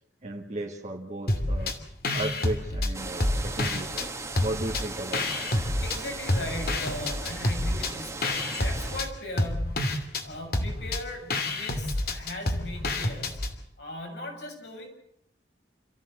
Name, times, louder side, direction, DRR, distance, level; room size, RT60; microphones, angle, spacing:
voice 1, 0.2-1.7 2.1-5.5, right 2 dB, 40° right, 1 dB, 1.8 m, -35 dB
sound 1, 1.3-1.8 2.0-4.1 4.4-6.0 6.3-13.5, left 1 dB, 60° left, 2.7 m, -28 dB
sound 2, 2.9-9.0, right 3 dB, 15° right, 2.0 m, -38 dB
voice 2, 5.8-10.0 10.2-13.4 13.8-14.9, left 1 dB, 75° left, 2 dB, 7.4 m, -38 dB
28.5 x 14.5 x 7.8 m, 0.78 s
head